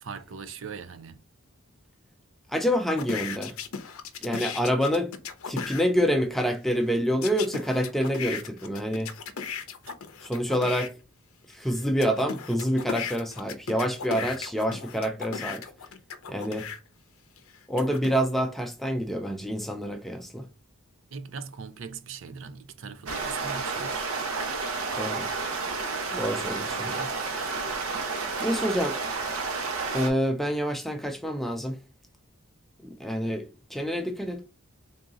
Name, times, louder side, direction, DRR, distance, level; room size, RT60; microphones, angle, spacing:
voice 1, 0.0-1.2 9.8-9.9 21.1-24.1, right 5 dB, 60° right, 0.4 m, -40 dB
voice 2, 2.5-3.5 4.2-5.1 5.5-9.1 10.2-10.9 11.5-15.6 16.3-16.7 17.7-20.5 25.0-25.3 26.1-27.1 28.4-29.0 29.9-31.8 33.0-34.5, equal, ahead, 0.4 m, -27 dB
sound 1, 3.0-5.8 7.2-10.9 11.5-16.8 17.4-18.2, left 6 dB, 75° left, 0.6 m, -36 dB
sound 2, 23.1-30.1, right 4 dB, 80° right, 1.0 m, -31 dB
3.7 x 2.7 x 3.7 m
head